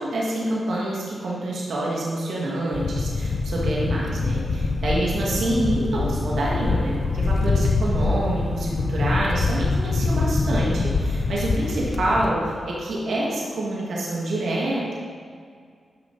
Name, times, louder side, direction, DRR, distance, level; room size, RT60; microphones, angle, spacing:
voice 1, 0.0-14.9, right 1 dB, 80° right, -5 dB, 2.0 m, -26 dB
sound 1, 2.7-12.3, left 3 dB, 60° left, 0.8 m, -24 dB
11.0 x 6.2 x 4.7 m, 2.1 s
cardioid pair, 55°, 0 cm